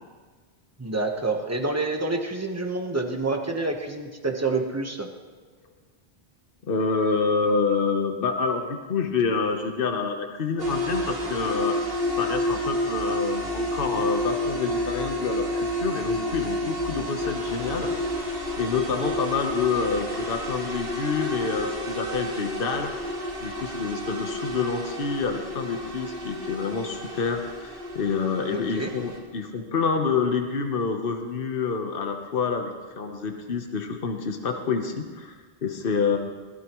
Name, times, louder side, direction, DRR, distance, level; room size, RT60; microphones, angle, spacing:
voice 1, 0.8-5.1 28.5-28.9, right 3 dB, 15° right, 2 dB, 1.2 m, -28 dB
voice 2, 6.7-11.8 12.2-17.9 18.6-22.9 23.4-36.2, left 5 dB, 60° left, 4 dB, 1.2 m, -27 dB
sound 1, 10.6-29.2, left 1 dB, 65° right, 2.6 m, -30 dB
21.0 x 15.5 x 3.1 m, 1.4 s
omnidirectional pair, 1.0 m